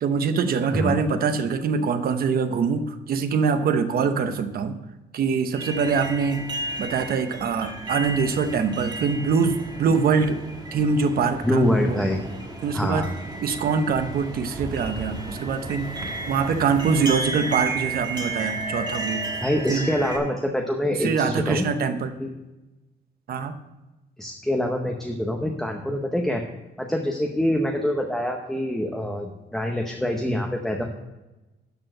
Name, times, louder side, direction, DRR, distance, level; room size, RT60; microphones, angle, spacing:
voice 1, 0.0-4.8 5.1-6.5 6.8-10.4 10.7-12.0 12.6-13.1 13.4-15.9 16.3-19.2 19.7-19.9 21.0-22.1 23.3-23.6, right 5 dB, 55° right, 9 dB, 0.8 m, -24 dB
sound 1, 5.5-20.2, right 2 dB, 20° right, 1.4 m, -33 dB
voice 2, 11.4-12.2 12.7-13.1 19.4-21.7 22.2-22.3 24.2-26.4 26.8-30.8, left 1 dB, ahead, 2 dB, 0.7 m, -25 dB
12.0 x 4.5 x 7.7 m, 1.1 s
cardioid pair, 170°, 19 cm